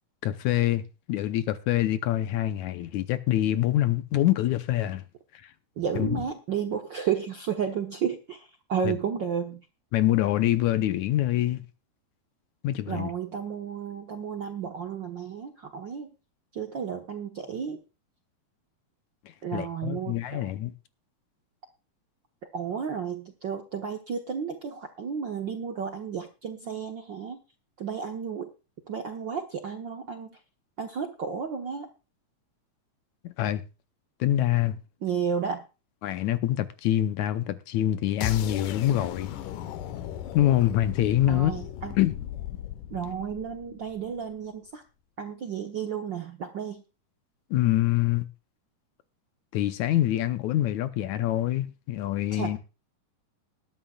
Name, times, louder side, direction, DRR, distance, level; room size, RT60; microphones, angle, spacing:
voice 1, 0.2-5.0 5.3-5.5 6.0-6.2 8.9-9.0 9.9-11.6 12.6-13.1 19.5-20.7 33.2-33.6 34.2-34.8 36.0-39.3 40.3-41.5 42.0-42.2 47.5-48.3 49.5-52.6, left 13 dB, 75° left, 2.0 m, -25 dB
voice 2, 5.8-9.6 12.9-16.1 16.5-17.8 19.4-20.5 22.5-27.4 27.8-28.5 28.9-30.4 30.8-31.9 35.0-35.6 41.3-42.0 42.9-44.8 45.2-46.8 52.3-52.6, right 7 dB, 60° right, 1.2 m, -32 dB
sound 1, 38.2-44.2, left 11 dB, 90° left, 2.6 m, -37 dB
20.5 x 10.5 x 2.3 m
omnidirectional pair, 3.7 m